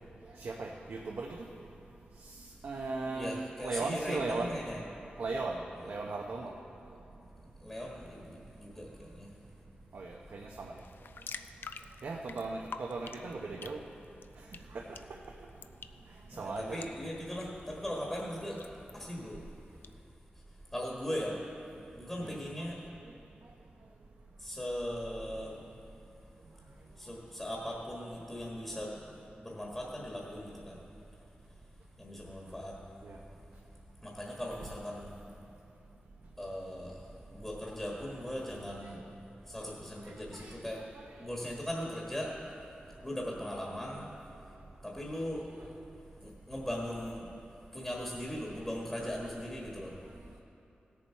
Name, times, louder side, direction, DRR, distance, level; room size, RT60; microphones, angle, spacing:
voice 1, 0.4-1.4 2.6-4.6 5.2-5.6 5.8-6.5 9.9-10.7 12.0-13.8 14.7-14.8 16.4-16.9 22.2-22.4 33.0-33.2 40.3-40.5, right 3 dB, 75° right, 0 dB, 0.7 m, -37 dB
voice 2, 3.1-4.8 5.8-5.9 7.6-9.3 16.3-18.6 18.9-19.4 20.7-21.4 22.0-22.8 24.4-25.6 27.0-29.0 29.4-30.8 32.0-32.8 34.0-35.2 36.4-37.0 37.3-39.0 39.5-40.8 41.2-42.3 43.0-44.1 44.8-45.5 46.2-47.3 47.7-50.0, equal, 10° left, -3 dB, 1.4 m, -39 dB
sound 1, 10.8-19.9, left 5 dB, 75° left, 0.4 m, -50 dB
17.0 x 7.3 x 4.5 m, 2.8 s
wide cardioid pair, 135°, 4 cm